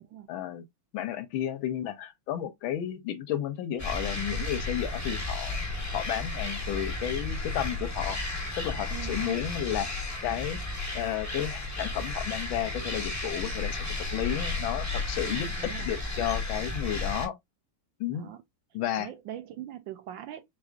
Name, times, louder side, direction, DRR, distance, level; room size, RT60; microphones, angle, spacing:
voice 1, 0.3-0.6 0.9-5.6 5.9-8.2 8.6-9.9 10.2-10.6 10.9-13.9 14.1-15.5 15.9-17.3 18.0-18.3 18.7-19.1, left 11 dB, 75° left, 1.4 m, -32 dB
sound 1, 3.8-17.3, left 2 dB, 25° left, 0.3 m, -33 dB
voice 2, 8.9-9.5 15.2-15.9 18.1-18.4 19.0-20.4, right 12 dB, 75° right, 1.1 m, -42 dB
4.9 x 3.5 x 2.4 m
omnidirectional pair, 2.4 m